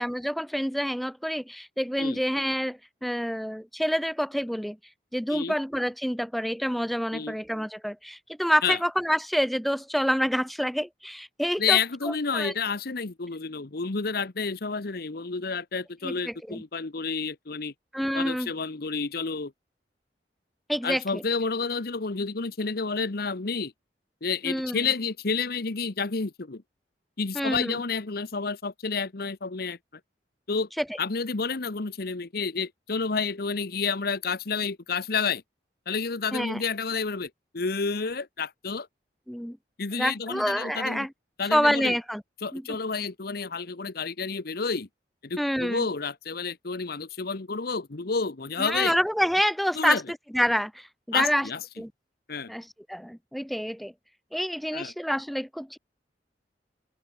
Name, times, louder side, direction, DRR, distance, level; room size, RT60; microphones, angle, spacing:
voice 1, 0.0-4.8 5.1-11.8 12.1-12.5 16.0-16.6 17.9-18.5 20.7-21.2 24.4-24.9 27.3-27.8 30.8-30.9 36.3-36.6 39.3-39.6 39.9-41.1 41.5-42.2 42.5-42.8 45.4-45.9 48.6-50.0 50.3-51.5 51.8-51.9 52.5-53.9 54.3-55.8, equal, ahead, 2.0 m, -27 dB
voice 2, 11.6-17.7 18.1-19.5 20.8-23.7 24.2-26.6 27.2-29.8 30.5-30.7 31.0-35.4 35.9-38.9 39.8-41.1 41.4-42.0 42.4-44.9 45.2-49.0 49.7-50.0 51.1-51.6 52.3-52.5 54.7-54.9, left 5 dB, 60° left, 1.0 m, -30 dB
open air
head